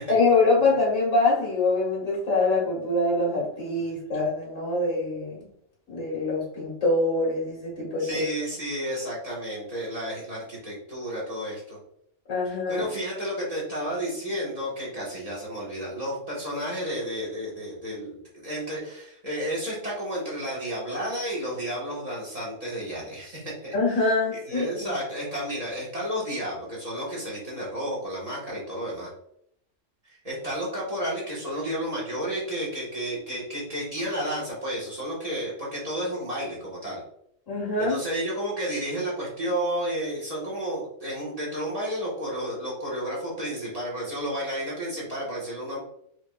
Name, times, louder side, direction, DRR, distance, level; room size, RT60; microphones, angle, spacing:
voice 1, 0.1-5.5 5.9-8.2 12.3-12.9 23.7-24.9 37.5-38.0, left 3 dB, 80° left, -6 dB, 2.2 m, -24 dB
voice 2, 8.0-11.8 12.7-23.7 24.0-24.1 24.5-29.1 30.1-37.0 37.8-45.8, equal, 30° right, -6 dB, 1.4 m, -32 dB
4.6 x 3.4 x 2.3 m, 0.70 s
omnidirectional pair, 1.3 m